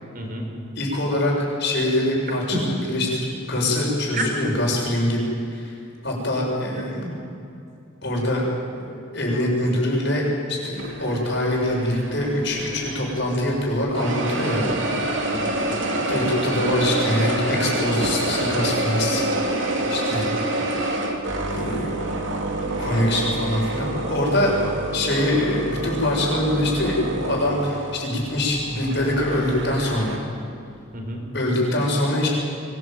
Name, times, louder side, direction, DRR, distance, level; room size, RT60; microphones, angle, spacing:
voice 1, 0.1-0.5 2.5-2.6 4.1-4.6 6.7-7.1 15.3-15.7 24.5-24.9 30.9-31.2, right 1 dB, 40° right, 2 dB, 4.4 m, -30 dB
voice 2, 0.7-5.3 5.5-5.7 6.0-7.0 8.0-8.4 8.9-15.0 16.1-19.2 19.9-20.4 21.5-21.9 22.6-24.5 24.9-30.2 31.3-32.3, left 1 dB, 55° left, -2 dB, 7.0 m, -24 dB
sound 1, 10.8-13.6 14.0-30.2, right 1 dB, 60° right, 3.3 m, -27 dB
24.0 x 19.5 x 9.2 m, 2.6 s
head